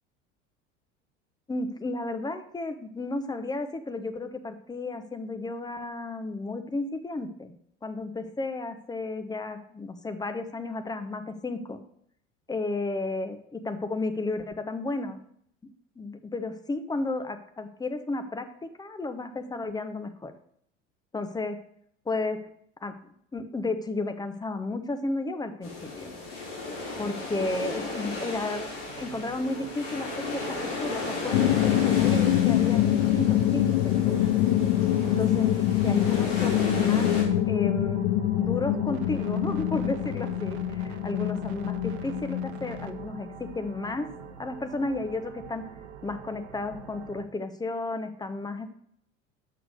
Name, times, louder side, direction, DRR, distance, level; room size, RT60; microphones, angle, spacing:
voice 1, 1.5-7.5 7.8-11.8 12.5-15.2 16.0-20.3 21.1-21.6 22.1-22.4 22.8-22.9 23.3-26.1 27.0-28.7 29.0-34.3 35.0-35.5 35.8-37.1 37.5-38.0 38.4-44.1 44.4-45.7 46.0-48.6, left 2 dB, 10° left, 8 dB, 0.8 m, -33 dB
sound 1, 25.6-37.2, left 3 dB, 60° left, 3.1 m, -35 dB
sound 2, 27.4-47.3, right 9 dB, 55° right, 0.9 m, -45 dB
sound 3, 31.3-43.9, left 12 dB, 40° left, 0.4 m, -25 dB
6.5 x 6.0 x 6.5 m, 0.68 s
figure-of-eight pair, 75°, 39 cm